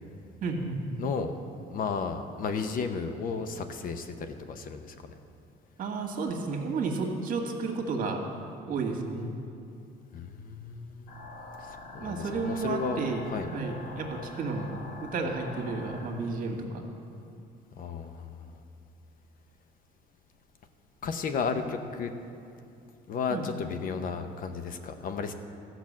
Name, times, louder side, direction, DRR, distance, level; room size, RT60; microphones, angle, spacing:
voice 1, 0.4-0.9 5.8-8.2 8.7-9.3 12.0-13.2 13.5-14.7 15.0-16.8 23.3-23.5, right 4 dB, 55° right, 2 dB, 1.8 m, -32 dB
voice 2, 1.0-1.3 1.7-5.0 10.1-11.2 11.7-13.5 17.8-18.4 21.0-22.1 23.1-25.3, left 5 dB, 55° left, 8 dB, 0.9 m, -33 dB
sound 1, 11.1-16.1, left 3 dB, 90° left, 1.7 m, -44 dB
14.0 x 6.0 x 7.4 m, 2.6 s
cardioid pair, 110°, 17 cm